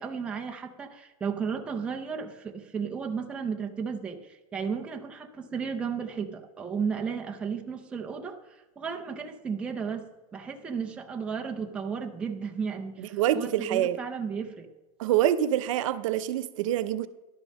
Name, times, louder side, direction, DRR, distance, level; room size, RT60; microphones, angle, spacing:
voice 1, 0.0-10.1 10.3-14.7, right 6 dB, 5° right, 0.4 m, -34 dB
voice 2, 13.0-14.0 15.0-17.1, right 11 dB, 60° right, 0.5 m, -26 dB
11.0 x 6.7 x 6.3 m
supercardioid pair, 180°, 19 cm